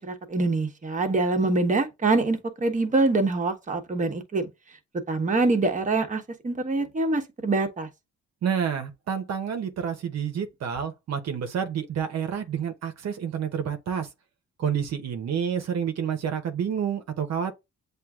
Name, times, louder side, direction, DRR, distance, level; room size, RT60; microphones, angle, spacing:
voice 1, 0.0-4.5 5.1-7.9, right 3 dB, 25° right, 1.1 m, -25 dB
voice 2, 8.4-14.1 14.6-17.5, right 7 dB, 60° right, 0.9 m, -29 dB
7.6 x 2.6 x 2.4 m
cardioid pair, 90°, 30 cm